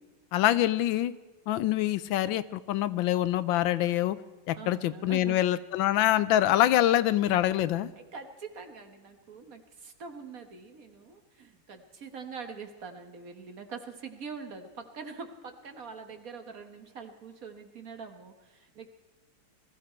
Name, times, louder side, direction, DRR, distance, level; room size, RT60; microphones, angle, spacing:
voice 1, 0.3-1.1 1.5-4.2 4.5-7.9, left 13 dB, 90° left, 15 dB, 1.4 m, -25 dB
voice 2, 4.6-5.4 8.0-18.9, right 5 dB, 50° right, 6 dB, 1.6 m, -44 dB
20.5 x 14.5 x 4.4 m, 1.2 s
omnidirectional pair, 2.1 m